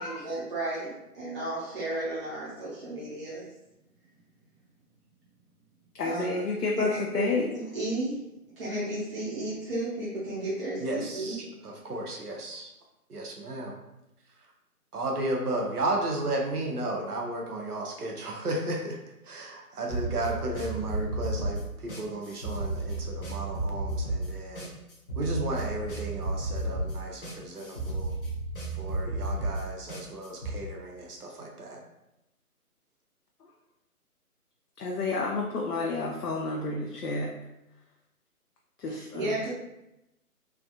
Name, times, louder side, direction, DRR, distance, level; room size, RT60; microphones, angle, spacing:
voice 1, 0.0-3.4 6.0-6.4 6.8-7.3 7.7-8.2 8.5-11.4 38.9-39.5, right 1 dB, 40° right, -9 dB, 0.8 m, -33 dB
voice 2, 5.9-7.5 34.8-37.3 38.8-39.5, left 3 dB, 85° left, -1 dB, 0.6 m, -30 dB
voice 3, 10.8-12.7 13.1-13.8 14.4-14.5 14.9-19.0 19.2-24.7 25.2-28.1 28.7-31.8, right 2 dB, 80° right, 0 dB, 0.9 m, -34 dB
sound 1, 19.9-30.5, right 2 dB, 35° left, 0.7 m, -33 dB
3.3 x 2.5 x 2.3 m, 0.89 s
figure-of-eight pair, 145°, 45 cm